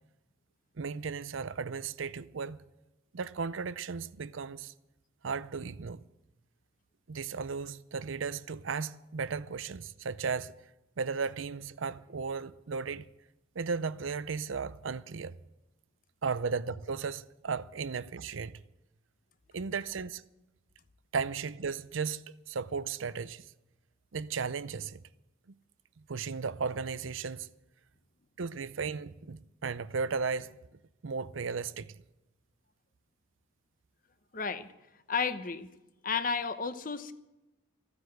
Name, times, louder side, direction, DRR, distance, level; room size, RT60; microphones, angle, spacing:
voice 1, 0.8-2.6 3.1-4.7 5.2-6.0 7.1-10.5 11.0-13.1 13.6-15.4 16.2-18.6 19.5-20.2 21.1-23.5 24.1-25.0 26.0-27.5 28.4-30.6 31.0-31.9, right 5 dB, 75° right, 0.6 m, -35 dB
voice 2, 34.3-34.7 35.1-35.7 36.0-37.1, left 5 dB, 40° left, 0.9 m, -32 dB
15.0 x 9.8 x 7.9 m
head